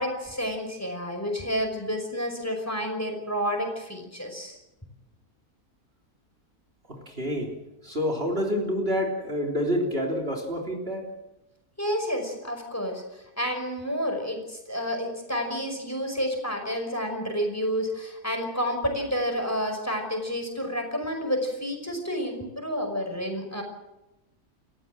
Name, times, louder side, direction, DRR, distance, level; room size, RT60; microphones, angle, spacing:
voice 1, 0.0-4.6 11.8-13.0 13.4-23.6, equal, 10° left, 4 dB, 5.4 m, -30 dB
voice 2, 6.9-7.5 7.8-11.1, equal, 35° right, 2 dB, 3.6 m, -28 dB
29.5 x 15.0 x 7.6 m, 0.96 s
omnidirectional pair, 1.7 m